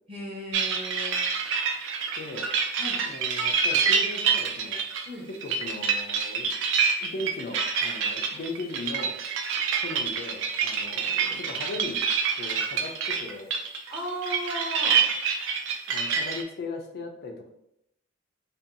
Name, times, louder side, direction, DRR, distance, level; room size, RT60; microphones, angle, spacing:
voice 1, 0.1-1.2 2.8-3.0 5.0-5.3 11.2-11.4 13.9-15.0, equal, 30° right, -4 dB, 0.8 m, -35 dB
sound 1, 0.5-16.4, right 6 dB, 65° right, 0.3 m, -27 dB
voice 2, 2.1-2.5 3.0-4.8 5.3-6.7 7.0-9.1 9.8-12.0 12.3-13.5 15.9-17.5, left 2 dB, 50° left, 3 dB, 0.4 m, -38 dB
2.6 x 2.2 x 2.5 m, 0.78 s
head